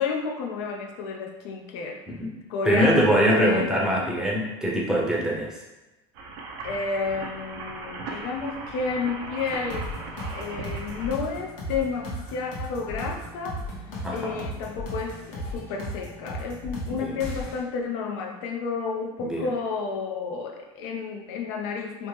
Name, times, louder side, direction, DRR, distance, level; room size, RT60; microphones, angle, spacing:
voice 1, 0.0-2.0 2.5-4.2 6.6-9.9 10.3-13.6 14.1-22.1, left 4 dB, 80° left, 1 dB, 0.5 m, -31 dB
voice 2, 2.6-5.5 14.0-14.5 16.9-17.2 19.2-19.5, equal, 5° right, -3 dB, 0.6 m, -23 dB
sound 1, 6.2-11.2, right 3 dB, 75° right, 0.5 m, -38 dB
sound 2, 9.4-17.6, equal, 60° left, 0.9 m, -36 dB
2.8 x 2.0 x 3.1 m, 1.1 s
supercardioid pair, 120°, 13 cm